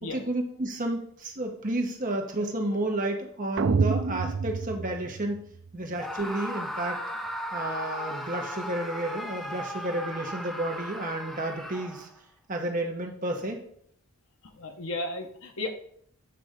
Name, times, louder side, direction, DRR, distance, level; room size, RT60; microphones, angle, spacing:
voice 1, 0.1-5.4 5.7-7.0 7.5-12.1 12.5-13.6, right 1 dB, 40° right, 3 dB, 1.0 m, -31 dB
sound 1, 3.6-5.7, right 4 dB, 55° right, 0.4 m, -28 dB
Screaming, 5.9-12.2, equal, ahead, 0.5 m, -36 dB
voice 2, 14.6-15.7, left 2 dB, 70° left, 5 dB, 1.0 m, -34 dB
7.9 x 3.3 x 5.0 m, 0.66 s
head